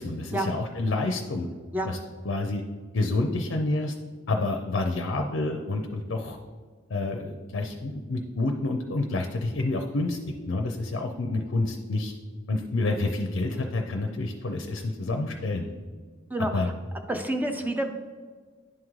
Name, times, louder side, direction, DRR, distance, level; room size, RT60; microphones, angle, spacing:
voice 1, 0.0-1.5 1.9-2.0 2.2-2.6 2.9-3.9 4.3-6.4 6.9-10.2 10.5-12.1 12.5-15.7 16.4-16.7, left 2 dB, 65° left, 3 dB, 0.5 m, -28 dB
voice 2, 16.3-16.7 17.1-17.9, right 1 dB, 10° right, 5 dB, 0.4 m, -28 dB
10.5 x 3.7 x 3.1 m, 1.5 s
head